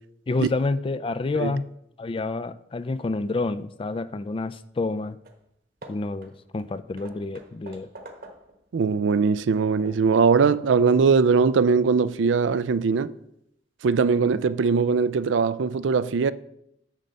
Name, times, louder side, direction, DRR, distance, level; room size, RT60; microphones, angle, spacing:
voice 1, 0.3-1.6 2.0-5.2 5.9-7.9, left 3 dB, 30° left, 0.3 m, -28 dB
Hammer / Wood, 4.9-5.0 5.2-5.5 5.8-8.7 9.1-10.2, right 1 dB, 50° right, 1.2 m, -47 dB
voice 2, 8.7-13.1 13.8-16.3, right 5 dB, 80° right, 0.4 m, -21 dB
7.4 x 6.8 x 5.2 m
head